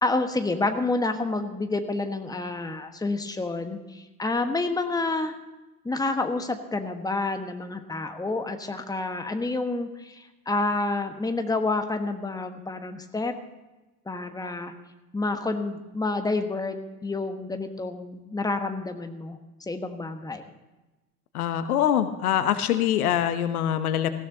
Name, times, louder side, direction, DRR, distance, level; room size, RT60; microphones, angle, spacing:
voice 1, 0.0-5.3 5.8-13.3 14.1-14.7 15.1-19.4 19.7-20.4, left 3 dB, 10° left, 7 dB, 1.3 m, -29 dB
voice 2, 21.3-24.1, left 10 dB, 70° left, 11 dB, 1.0 m, -24 dB
19.0 x 16.0 x 2.8 m, 1.1 s
figure-of-eight pair, 65°, 46 cm